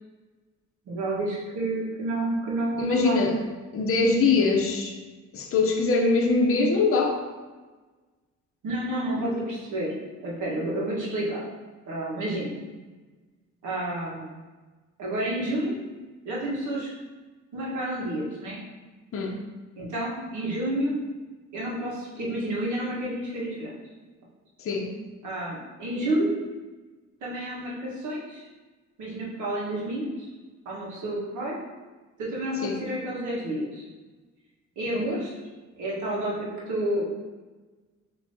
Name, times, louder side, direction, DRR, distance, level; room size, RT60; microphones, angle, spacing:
voice 1, 0.9-3.2 8.6-11.4 11.9-12.6 13.6-14.3 15.0-15.8 16.2-16.9 17.5-18.6 19.8-21.0 21.5-23.7 25.2-26.3 27.2-28.5 29.0-30.3 30.6-31.6 32.2-33.8 34.8-35.3 35.8-37.0, right 1 dB, 75° right, -5 dB, 1.4 m, -30 dB
voice 2, 2.8-3.4 3.7-5.0 5.3-7.2 19.1-19.4 24.6-24.9 32.6-32.8 34.9-35.1, left 3 dB, 45° left, 1 dB, 0.7 m, -23 dB
6.4 x 3.0 x 2.7 m, 1.3 s
cardioid pair, 90°, 30 cm